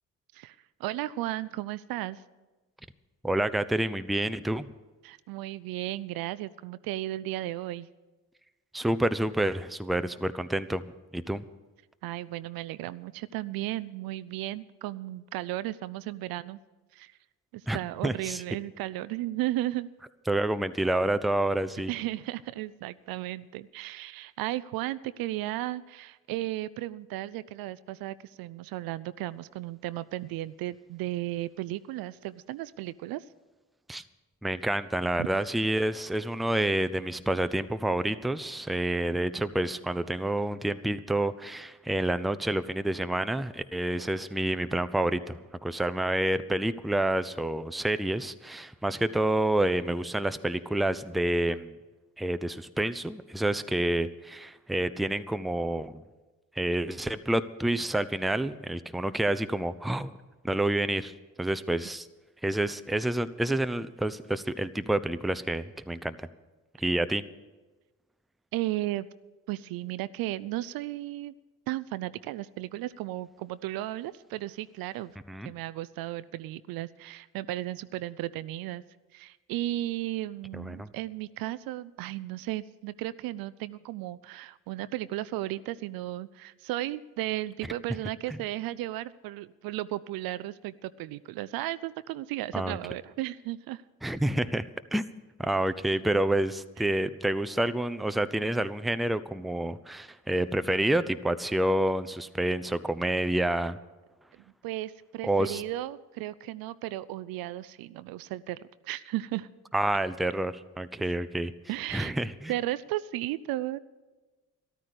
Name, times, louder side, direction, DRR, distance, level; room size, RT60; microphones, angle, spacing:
voice 1, 0.3-2.2 5.0-7.9 12.0-16.6 16.9-17.1 17.5-19.9 21.9-33.2 35.2-35.3 68.5-69.1 69.5-71.3 71.7-75.2 75.4-78.8 79.1-93.8 96.8-96.9 104.6-109.5 111.7-112.1 112.5-113.8, right 15 dB, 60° right, 17 dB, 0.5 m, -35 dB
voice 2, 3.2-4.7 8.7-10.9 11.1-11.4 17.7-17.8 18.0-18.4 20.3-21.9 33.9-34.0 34.4-51.7 52.2-56.0 56.6-60.1 60.4-61.1 61.4-62.1 62.4-66.3 66.8-67.2 75.3-75.5 80.5-80.9 88.3-88.4 92.5-92.8 94.0-94.7 94.9-95.0 95.4-103.8 105.2-105.6 109.7-111.5 111.9-112.5, right 1 dB, ahead, 12 dB, 0.6 m, -28 dB
13.5 x 12.5 x 6.7 m, 1.2 s
hypercardioid pair, 40°, 40 cm